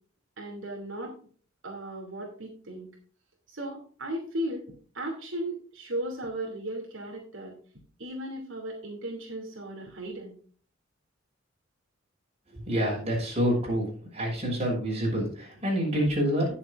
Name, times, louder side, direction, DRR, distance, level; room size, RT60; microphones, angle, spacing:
voice 1, 0.4-1.1 1.6-2.9 3.5-4.6 4.9-7.5 8.0-10.4, right 1 dB, 75° right, 0 dB, 2.8 m, -36 dB
voice 2, 12.5-16.6, equal, 30° right, -2 dB, 6.0 m, -27 dB
19.0 x 7.3 x 2.5 m, 0.43 s
head